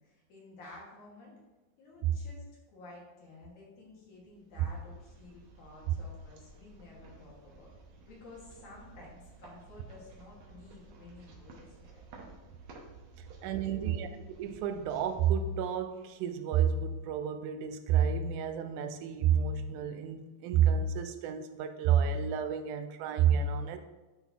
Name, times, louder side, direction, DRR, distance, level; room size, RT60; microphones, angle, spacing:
voice 1, 0.0-1.3 1.8-7.7 8.1-12.0, left 2 dB, 80° left, -5 dB, 3.2 m, -52 dB
sound 1, 4.1-16.2, right 3 dB, 70° right, 2.1 m, -55 dB
voice 2, 13.4-14.1 14.4-23.8, right 8 dB, 90° right, 8 dB, 2.1 m, -30 dB
11.0 x 4.0 x 2.8 m, 1.2 s
omnidirectional pair, 3.4 m